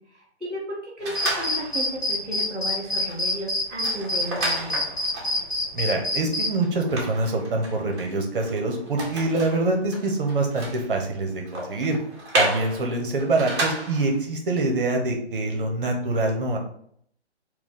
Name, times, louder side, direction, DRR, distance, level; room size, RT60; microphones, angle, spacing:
voice 1, 0.1-5.0, equal, ahead, -16 dB, 0.5 m, -34 dB
sound 1, 1.0-1.9 2.4-2.5 2.8-14.2, right 1 dB, 25° right, 1.0 m, -33 dB
sound 2, 1.1-6.5, left 2 dB, 45° left, 1.2 m, -25 dB
voice 2, 5.7-12.0 12.4-16.6, right 2 dB, 50° right, 3 dB, 0.9 m, -25 dB
4.6 x 2.3 x 3.7 m, 0.65 s
figure-of-eight pair, 150°, 34 cm